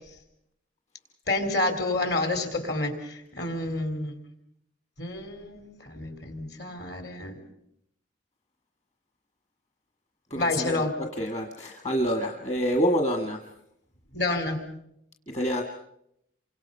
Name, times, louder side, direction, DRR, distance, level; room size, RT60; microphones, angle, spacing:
voice 1, 1.3-4.2 5.0-7.4 10.3-10.9 14.1-14.6, left 2 dB, 60° left, 7 dB, 4.1 m, -29 dB
voice 2, 10.3-13.4 15.3-15.6, equal, 35° left, 3 dB, 1.7 m, -27 dB
28.5 x 25.0 x 5.6 m, 0.76 s
head